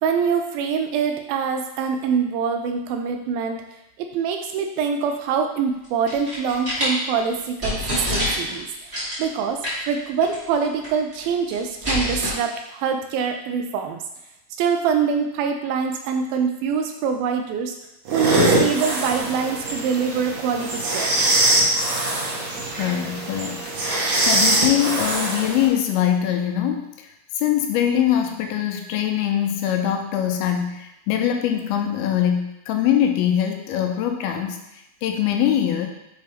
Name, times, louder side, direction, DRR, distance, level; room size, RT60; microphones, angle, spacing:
voice 1, 0.0-3.6 4.0-14.0 14.6-17.8 18.1-21.2, right 6 dB, 80° right, 5 dB, 2.2 m, -24 dB
sound 1, 5.8-6.9 7.4-7.5 7.6-8.6 8.9-9.3 9.6-9.9 10.2-10.3 10.6-11.2 11.5-12.3, left 1 dB, 25° right, 1.6 m, -26 dB
sound 2, 18.1-25.7, right 1 dB, 60° right, 2.4 m, -22 dB
voice 2, 22.7-27.1 27.4-35.9, left 10 dB, 90° left, 4 dB, 2.6 m, -23 dB
6.5 x 4.5 x 3.5 m, 0.88 s
omnidirectional pair, 4.4 m